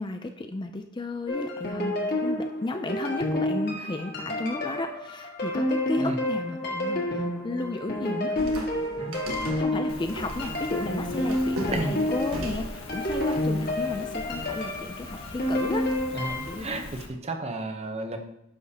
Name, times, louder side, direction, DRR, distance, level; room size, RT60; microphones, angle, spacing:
voice 1, 0.0-8.7 9.6-15.9 16.5-16.9, left 2 dB, 20° left, 6 dB, 0.4 m, -33 dB
sound 1, 1.3-16.6, left 1 dB, 50° left, 1.6 m, -29 dB
sound 2, 8.3-13.4, right 1 dB, 75° right, 1.4 m, -38 dB
Rain, 9.9-17.1, left 2 dB, 90° left, 1.4 m, -42 dB
voice 2, 11.7-12.0 16.1-18.2, right 2 dB, 30° right, 5 dB, 0.8 m, -33 dB
10.0 x 6.6 x 2.8 m, 0.80 s
head